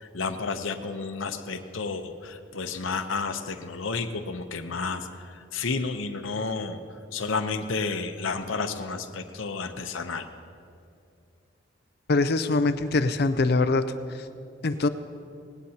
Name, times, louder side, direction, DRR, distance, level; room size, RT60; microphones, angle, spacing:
voice 1, 0.0-6.8 7.1-10.3, left 4 dB, 80° left, 6 dB, 0.8 m, -31 dB
voice 2, 12.1-13.9 14.6-14.9, left 3 dB, 55° left, 11 dB, 0.5 m, -23 dB
19.0 x 17.0 x 2.9 m, 2.4 s
head